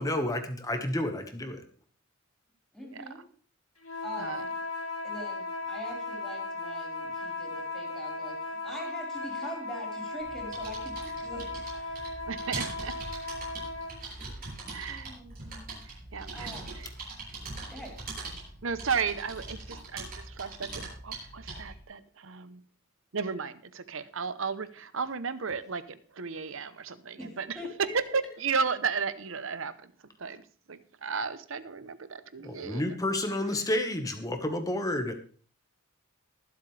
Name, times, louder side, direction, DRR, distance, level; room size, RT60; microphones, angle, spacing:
voice 1, 0.0-1.6 32.4-35.1, left 1 dB, 15° left, 6 dB, 1.4 m, -30 dB
voice 2, 2.7-3.2 4.0-4.5 5.0-12.2 14.2-14.5 14.9-15.8 16.3-16.7 17.7-18.0 27.2-28.1, equal, ahead, -2 dB, 4.8 m, -44 dB
sound 1, 3.8-14.0, left 3 dB, 90° left, 2.9 m, -37 dB
sound 2, 10.2-21.8, right 3 dB, 45° right, 7.0 m, -41 dB
voice 3, 12.3-12.9 14.7-15.1 16.1-16.9 18.6-22.6 23.1-27.5 27.9-29.7 30.2-30.4 30.7-32.8, right 5 dB, 65° right, 14 dB, 0.8 m, -34 dB
22.0 x 7.8 x 3.4 m, 0.43 s
head